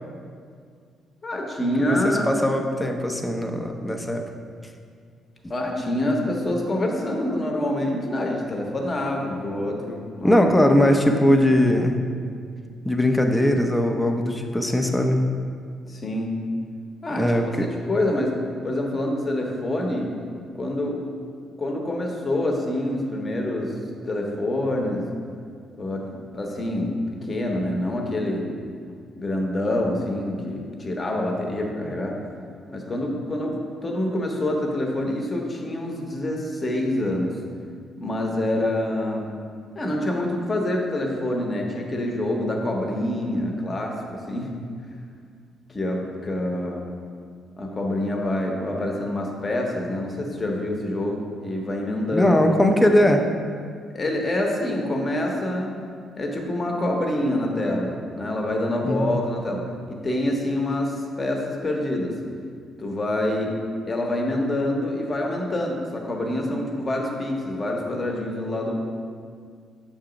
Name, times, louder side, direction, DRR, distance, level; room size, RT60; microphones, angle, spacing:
voice 1, 1.2-2.4 5.5-10.4 15.9-16.3 17.0-17.3 17.6-18.3 18.6-20.1 20.5-21.0 21.6-23.7 24.0-25.1 25.8-28.5 29.1-32.2 32.7-37.4 38.0-39.3 39.7-44.5 45.7-46.8 47.6-52.3 53.9-55.8 56.2-62.1 62.8-63.5 63.9-68.7, left 1 dB, 30° left, 0 dB, 0.9 m, -26 dB
voice 2, 1.8-4.3 10.2-12.0 12.8-15.2 17.2-17.7 52.1-53.2 58.8-59.2, left 1 dB, 10° left, 3 dB, 0.5 m, -20 dB
7.0 x 2.9 x 5.0 m, 2.1 s
cardioid pair, 90°, 0 cm